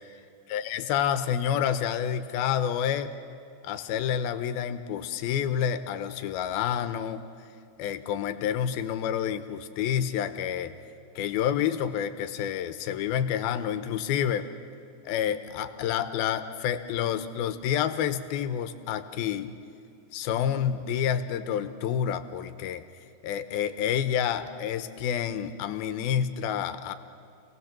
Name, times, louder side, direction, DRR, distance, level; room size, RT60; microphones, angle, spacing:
voice 1, 0.5-3.1 3.6-7.2 7.8-10.7 11.2-14.5 15.0-19.5 20.1-22.8 23.2-26.9, left 9 dB, 90° left, 10 dB, 2.8 m, -28 dB
28.5 x 18.5 x 7.3 m, 2.4 s
omnidirectional pair, 4.2 m